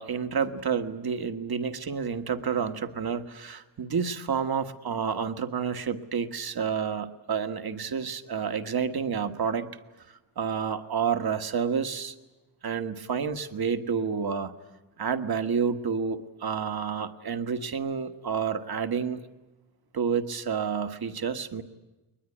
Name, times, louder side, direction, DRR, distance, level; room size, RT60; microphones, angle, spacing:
voice 1, 0.0-9.7 10.1-12.1 12.6-14.5 15.0-19.2 19.9-21.6, right 6 dB, 55° right, 9 dB, 1.4 m, -29 dB
21.5 x 21.0 x 10.0 m, 1.1 s
wide cardioid pair, 100°, 45 cm